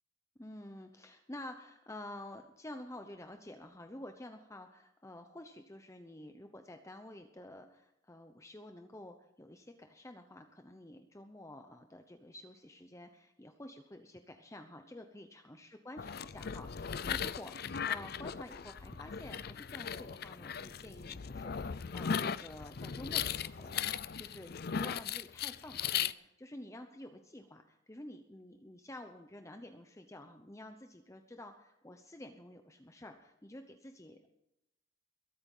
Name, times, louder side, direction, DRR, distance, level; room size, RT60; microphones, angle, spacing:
voice 1, 0.4-34.3, left 1 dB, 15° left, 6 dB, 0.9 m, -50 dB
sound 1, 16.0-26.1, left 7 dB, 55° left, 0.5 m, -38 dB
22.0 x 8.9 x 5.5 m, 0.87 s
head